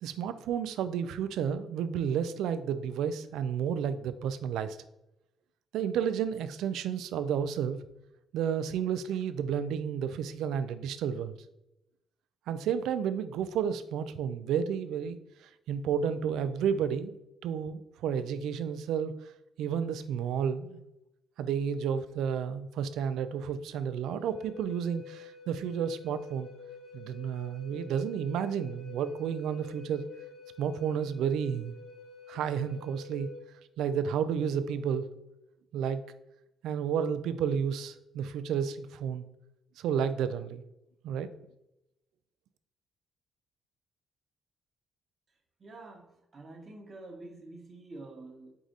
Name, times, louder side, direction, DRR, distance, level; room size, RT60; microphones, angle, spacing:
voice 1, 0.0-4.8 5.7-7.8 8.3-11.3 12.5-17.1 17.4-19.1 19.6-20.8 21.4-26.5 26.9-30.0 30.6-31.7 32.3-33.3 33.8-35.1 35.7-36.0 36.6-39.2 39.8-40.6 41.0-41.3, right 8 dB, 85° right, 12 dB, 0.3 m, -31 dB
Wind instrument woodwind instrument, 24.1-33.4, left 5 dB, 75° left, 0.9 m, -49 dB
voice 2, 45.6-48.5, right 2 dB, 40° right, 1 dB, 1.1 m, -47 dB
4.8 x 2.5 x 4.0 m, 0.88 s
cardioid pair, 90°, 0 cm